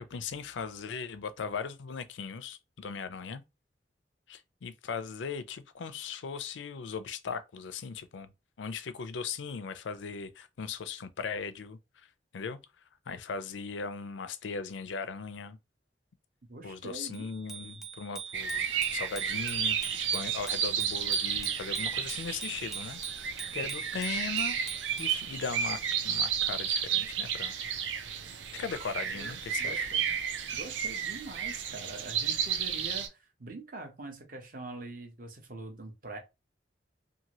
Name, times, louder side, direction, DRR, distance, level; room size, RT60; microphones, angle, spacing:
voice 1, 0.0-3.4 4.3-8.3 8.6-11.8 12.3-12.6 13.1-15.6 16.6-23.0 23.5-24.6 25.0-27.5 28.5-29.9, left 5 dB, 85° left, 0.4 m, -38 dB
voice 2, 16.5-17.3 29.1-30.1 30.5-36.2, right 2 dB, 50° right, 0.9 m, -44 dB
Bicycle bell, 17.1-25.2, right 6 dB, ahead, 0.3 m, -42 dB
sound 1, 18.3-33.1, right 8 dB, 85° right, 0.5 m, -32 dB
2.8 x 2.6 x 2.9 m
head